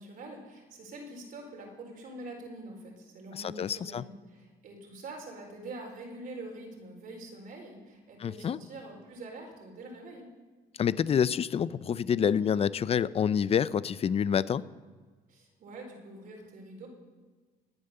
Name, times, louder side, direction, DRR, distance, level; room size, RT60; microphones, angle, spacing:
voice 1, 0.0-10.3 15.3-16.9, right 2 dB, 55° right, 0 dB, 4.6 m, -45 dB
voice 2, 3.3-4.0 8.2-8.6 10.8-14.6, left 8 dB, 35° left, 18 dB, 0.5 m, -27 dB
20.0 x 9.5 x 6.8 m, 1.4 s
cardioid pair, 110°, 17 cm